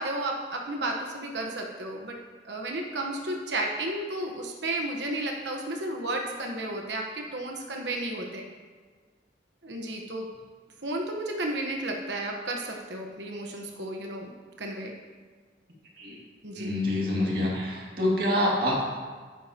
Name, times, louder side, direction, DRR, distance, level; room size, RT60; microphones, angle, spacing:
voice 1, 0.0-2.2 2.4-8.4 9.6-10.3 10.8-14.3 14.6-14.9 16.4-16.7, right 1 dB, 75° right, 1 dB, 1.1 m, -33 dB
voice 2, 16.5-18.8, left 1 dB, 55° right, -3 dB, 2.3 m, -26 dB
11.0 x 10.0 x 2.9 m, 1.5 s
head